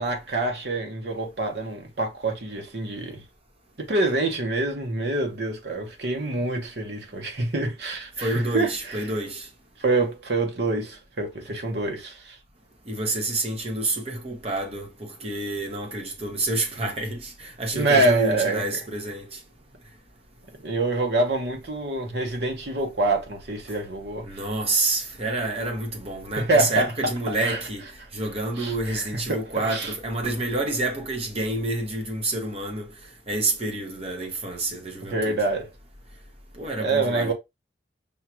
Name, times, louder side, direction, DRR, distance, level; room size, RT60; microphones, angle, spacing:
voice 1, 0.0-3.2 3.8-9.1 9.8-12.4 17.7-18.6 20.6-24.3 26.4-26.9 27.3-27.6 28.6-29.9 35.1-35.7 36.8-37.3, right 2 dB, 60° right, 1.0 m, -26 dB
voice 2, 8.2-9.5 12.9-19.4 24.2-27.9 28.1-32.9 33.3-35.5 36.5-37.3, right 2 dB, 35° right, 1.0 m, -28 dB
5.4 x 2.4 x 3.0 m
head